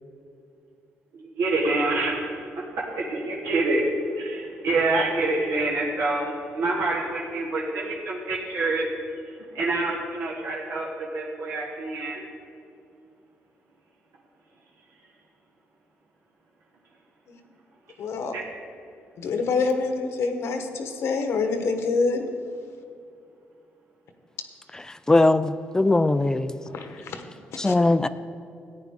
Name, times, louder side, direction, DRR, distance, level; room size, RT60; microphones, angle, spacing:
voice 1, 1.1-2.6 2.9-3.8 4.1-8.9 9.5-12.2 18.3-18.5, right 2 dB, 75° right, -4 dB, 1.4 m, -27 dB
voice 2, 18.0-18.3 19.2-22.3 26.7-27.2 27.5-27.7, left 4 dB, 75° left, 6 dB, 1.1 m, -26 dB
voice 3, 25.1-26.5 27.6-28.1, left 2 dB, 15° left, 13 dB, 0.3 m, -20 dB
14.5 x 9.5 x 3.6 m, 2.5 s
cardioid pair, 115°, 5 cm